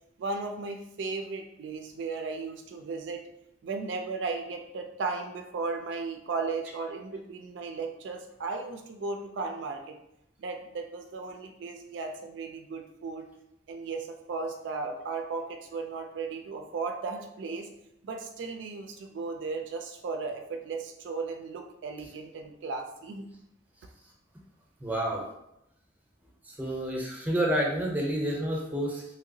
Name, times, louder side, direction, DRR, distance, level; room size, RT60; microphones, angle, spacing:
voice 1, 0.2-3.2 3.6-10.0 10.4-13.3 13.7-17.7 18.0-23.3, right 4 dB, 70° right, 4 dB, 0.3 m, -35 dB
voice 2, 24.8-25.2 26.4-29.0, right 1 dB, 10° right, -2 dB, 0.6 m, -29 dB
3.1 x 2.8 x 2.7 m, 0.85 s
head